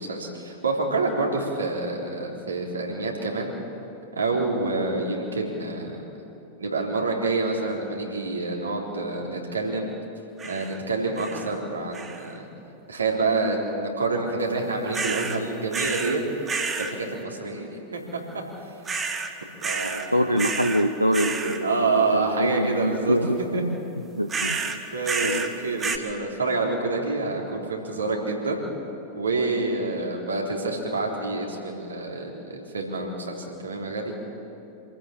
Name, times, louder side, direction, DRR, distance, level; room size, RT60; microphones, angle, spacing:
voice 1, 0.0-3.5 4.2-6.0 6.6-9.9 10.4-12.5 12.9-16.2 16.8-18.7 19.6-20.1 21.6-23.6 24.9-28.6 29.2-34.1, right 3 dB, 75° right, 0 dB, 3.6 m, -27 dB
sound 1, 10.4-10.8 11.2-11.6 11.9-12.4 14.9-15.4 15.7-16.2 16.5-16.9 18.9-19.3 19.6-20.1 20.4-20.8 21.1-21.6 24.3-25.5 25.8-26.0, right 5 dB, 20° right, 1.7 m, -29 dB
voice 2, 19.7-23.8 24.1-24.8 25.2-25.5, equal, 90° right, 6 dB, 0.9 m, -25 dB
26.5 x 14.5 x 8.8 m, 2.9 s
figure-of-eight pair, 90°, 0 cm